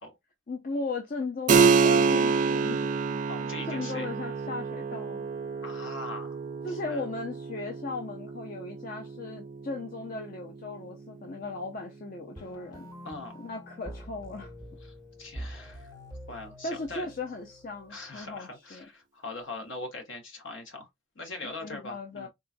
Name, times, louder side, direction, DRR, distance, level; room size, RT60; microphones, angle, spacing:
voice 1, 0.5-3.2 3.7-5.3 6.6-12.9 13.4-14.5 16.6-18.9 21.4-22.3, left 3 dB, 45° left, 0.5 m, -37 dB
Keyboard (musical), 1.5-11.7, right 5 dB, 40° right, 0.3 m, -28 dB
voice 2, 3.3-4.1 5.6-6.4 6.7-7.0 13.0-13.4 14.8-15.9 16.3-17.1 17.9-20.9 21.1-22.3, left 2 dB, 65° left, 1.2 m, -41 dB
sound 1, 12.4-18.4, equal, 20° left, 1.2 m, -45 dB
3.8 x 2.4 x 2.5 m
head